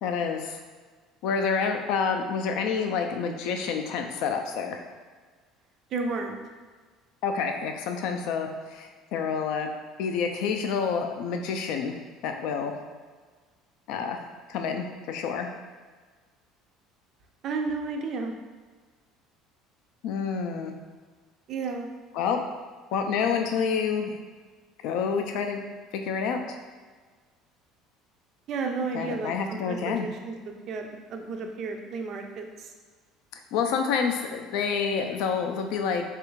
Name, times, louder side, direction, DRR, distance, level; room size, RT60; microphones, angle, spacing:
voice 1, 0.0-0.6 1.2-4.8 7.2-9.7 10.0-12.7 13.9-14.2 14.5-15.5 20.0-20.7 22.1-22.4 22.9-24.1 24.8-25.6 25.9-26.6 28.9-30.1 33.5-36.0, left 6 dB, 65° left, 4 dB, 0.4 m, -28 dB
voice 2, 5.9-6.4 17.4-18.3 21.5-21.9 28.5-32.7, right 4 dB, 40° right, 4 dB, 0.3 m, -32 dB
3.3 x 2.4 x 3.1 m, 1.5 s
cardioid pair, 160°, 0 cm